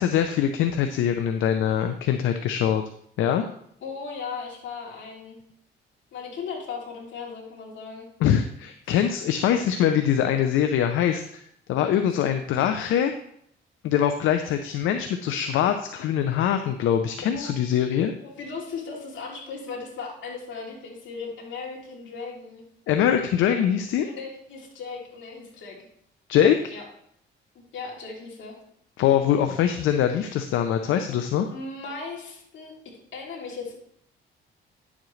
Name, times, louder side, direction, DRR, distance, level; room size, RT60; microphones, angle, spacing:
voice 1, 0.0-2.8 3.2-3.5 8.2-11.4 11.7-13.1 13.8-18.1 22.9-24.1 26.3-26.7 29.0-31.5, left 9 dB, 85° left, 7 dB, 0.6 m, -23 dB
voice 2, 3.8-5.4 6.1-8.1 17.2-17.5 18.2-22.6 24.0-25.9 26.7-26.8 27.5-28.5 31.5-32.7 33.1-33.7, left 4 dB, 70° left, -2 dB, 3.0 m, -37 dB
10.0 x 7.3 x 3.2 m, 0.69 s
cardioid pair, 90°, 20 cm